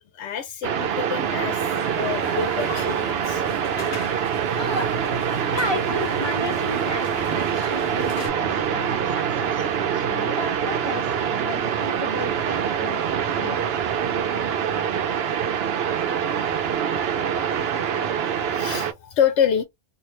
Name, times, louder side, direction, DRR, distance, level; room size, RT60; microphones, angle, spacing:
voice 1, 0.1-1.7 2.0-3.4 18.2-19.6, left 8 dB, 80° left, 1.0 m, -27 dB
sound 1, 0.6-18.9, right 8 dB, 65° right, 0.8 m, -25 dB
sound 2, 1.7-8.3, left 2 dB, 50° left, 1.1 m, -38 dB
voice 2, 5.5-13.8, left 2 dB, 35° left, 0.5 m, -34 dB
3.1 x 2.6 x 2.8 m
omnidirectional pair, 1.1 m